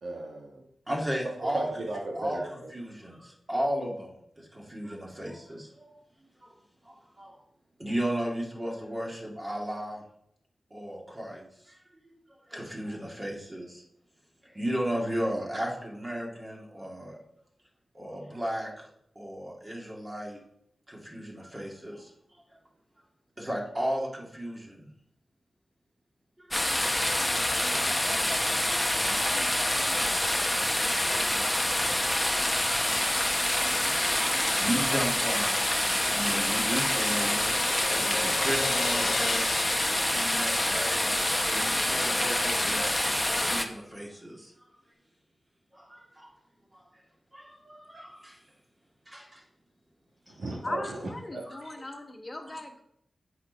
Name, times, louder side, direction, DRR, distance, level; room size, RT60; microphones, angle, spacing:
voice 1, 0.0-0.6 1.5-2.7 50.3-51.8, right 2 dB, 75° right, -1 dB, 1.4 m, -36 dB
voice 2, 0.9-1.7 2.1-2.4 2.7-5.9 6.4-6.6 6.8-7.4 7.8-10.0 10.7-11.8 12.0-12.1 12.5-13.8 14.4-17.2 17.9-18.9 19.2-20.4 20.9-22.6 23.4-24.9 26.4-33.6 33.9-41.1 41.5-43.0 43.3-44.7 45.7-46.4 46.7-47.0 47.3-48.4 49.1-49.4 52.5-52.6, equal, 25° right, -2 dB, 2.4 m, -36 dB
sound 1, 26.5-43.6, left 1 dB, 10° left, 1.0 m, -27 dB
Crash cymbal, 35.5-41.2, left 5 dB, 75° left, 0.6 m, -37 dB
voice 3, 50.3-52.8, left 2 dB, 30° left, 4 dB, 1.4 m, -39 dB
8.3 x 4.5 x 5.3 m, 0.72 s
cardioid pair, 60°, 0 cm